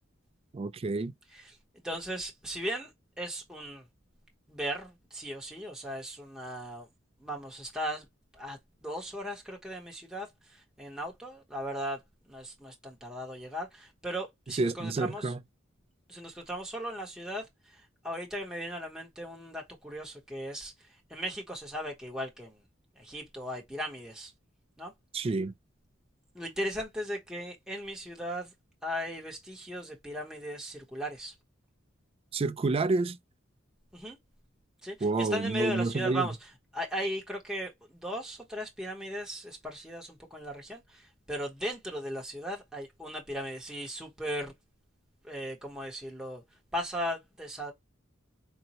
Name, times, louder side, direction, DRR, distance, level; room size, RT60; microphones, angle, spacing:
voice 1, 0.5-1.1 14.5-15.4 25.1-25.5 32.3-33.2 35.0-36.3, right 3 dB, 30° right, 0.3 m, -29 dB
voice 2, 1.3-2.9 3.2-3.8 4.5-6.9 7.2-8.1 8.3-12.0 12.3-15.3 16.1-20.7 21.1-22.6 23.0-24.3 24.8-24.9 26.3-28.5 28.8-31.3 33.9-34.2 34.8-44.5 45.2-46.4 46.7-47.7, equal, 5° right, 0.8 m, -37 dB
4.1 x 2.1 x 2.8 m
head